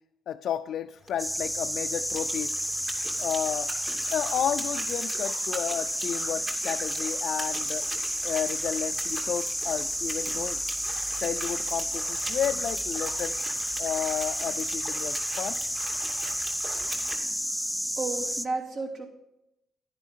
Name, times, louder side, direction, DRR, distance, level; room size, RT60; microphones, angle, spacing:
voice 1, 0.3-2.6 3.2-3.7 4.1-7.9 8.2-10.6 11.2-13.4 13.8-15.6, left 10 dB, 70° left, 7 dB, 0.4 m, -32 dB
sound 1, 1.0-17.2, right 2 dB, 35° right, 2.4 m, -41 dB
sound 2, 1.2-18.5, equal, 5° right, 0.5 m, -31 dB
voice 2, 18.0-19.1, right 3 dB, 65° right, -1 dB, 2.8 m, -32 dB
10.5 x 10.5 x 3.7 m, 0.88 s
cardioid pair, 90°, 0 cm